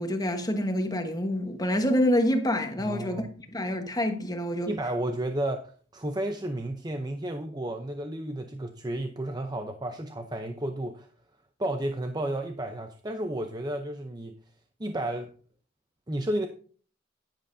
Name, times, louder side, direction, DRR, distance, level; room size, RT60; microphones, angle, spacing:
voice 1, 0.0-3.3 3.5-4.7, left 1 dB, 20° left, 1.2 m, -27 dB
voice 2, 2.8-3.3 4.7-11.1 11.6-14.4 14.8-15.3 16.1-16.5, right 1 dB, 20° right, 0.7 m, -32 dB
10.5 x 10.0 x 2.7 m
head